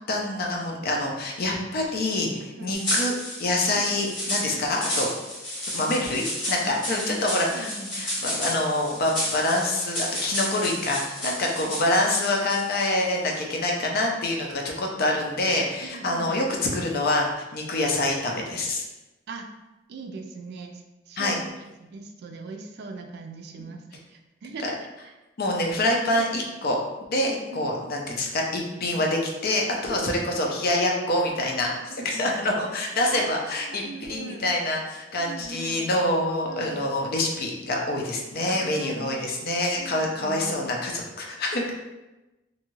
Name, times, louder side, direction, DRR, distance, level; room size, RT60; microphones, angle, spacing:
voice 1, 0.1-3.1 3.4-5.1 5.7-16.5 16.7-18.8 21.2-21.4 24.6-24.7 25.4-26.8 27.1-41.7, left 1 dB, 55° left, 0 dB, 0.5 m, -26 dB
sound 1, 2.7-13.0, left 1 dB, 70° left, 1.3 m, -32 dB
voice 2, 6.5-7.7 11.6-11.7 15.8-16.3 19.3-19.5 19.9-24.8 25.0-25.1 26.2-26.4 27.2-27.7 28.8-29.0 30.0-30.2 31.8-32.5 32.8-34.5 35.2-35.9 36.5-36.8 38.4-39.3 39.7-40.7, right 3 dB, 60° right, 4 dB, 0.3 m, -41 dB
2.6 x 2.3 x 3.0 m, 1.0 s
head